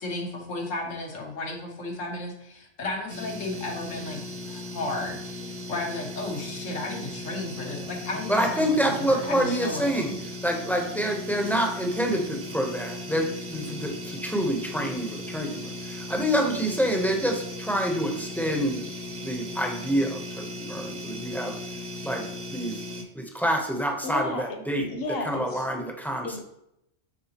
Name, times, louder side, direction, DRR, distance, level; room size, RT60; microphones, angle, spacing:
voice 1, 0.0-4.2 4.5-5.4 5.7-9.9, left 2 dB, 80° left, 1 dB, 1.6 m, -34 dB
sound 1, 3.1-23.0, left 1 dB, 50° right, 1.1 m, -37 dB
voice 2, 8.3-10.1 10.4-18.8 19.2-21.5 22.0-22.2 22.5-22.8 23.1-24.8 25.3-26.4, equal, ahead, 2 dB, 0.6 m, -27 dB
voice 3, 24.0-24.5 24.8-25.7 26.2-26.4, left 2 dB, 55° left, 4 dB, 1.2 m, -32 dB
9.5 x 3.7 x 2.9 m, 0.81 s
omnidirectional pair, 1.3 m